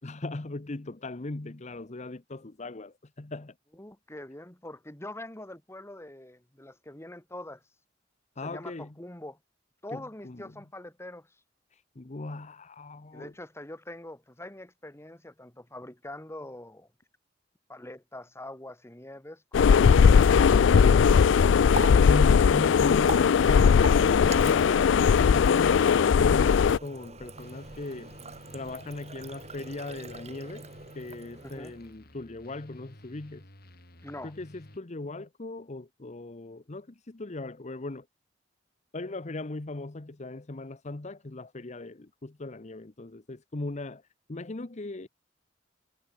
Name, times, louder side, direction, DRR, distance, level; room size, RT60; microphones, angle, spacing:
voice 1, 0.0-3.5 8.4-8.9 9.9-10.7 11.7-13.3 21.7-28.1 28.5-30.7 30.9-33.5 34.2-38.1 38.9-44.0 44.3-45.1, left 2 dB, 40° left, 0.9 m, -38 dB
voice 2, 3.8-7.6 8.4-9.4 9.8-11.3 13.1-16.9 17.7-20.2 31.4-31.8 34.0-34.3, left 1 dB, 15° left, 2.2 m, -44 dB
sound 1, 19.5-26.8, left 6 dB, 80° left, 0.4 m, -19 dB
Water tap faucet, 21.2-32.0, right 4 dB, 35° right, 5.9 m, -43 dB
sound 2, 27.3-34.8, left 1 dB, 55° left, 7.4 m, -52 dB
head